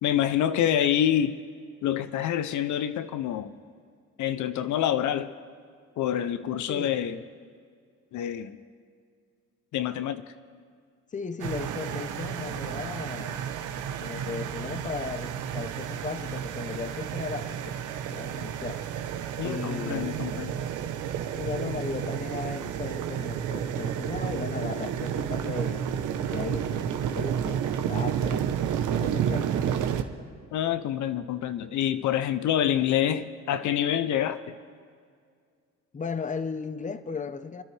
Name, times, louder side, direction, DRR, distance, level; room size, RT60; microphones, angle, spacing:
voice 1, 0.0-1.4 1.8-3.5 4.2-5.3 6.0-7.2 8.1-8.6 9.7-10.3 19.4-20.6 30.5-34.5, left 10 dB, 75° left, 0.6 m, -27 dB
voice 2, 11.1-13.5 14.0-17.8 18.1-18.8 19.4-20.5 21.3-25.9 26.2-28.5 29.0-29.5 35.9-37.6, left 5 dB, 25° left, 0.8 m, -36 dB
sound 1, 11.4-30.0, right 9 dB, 85° right, 0.9 m, -31 dB
29.5 x 10.5 x 3.3 m
cardioid pair, 90°, 30 cm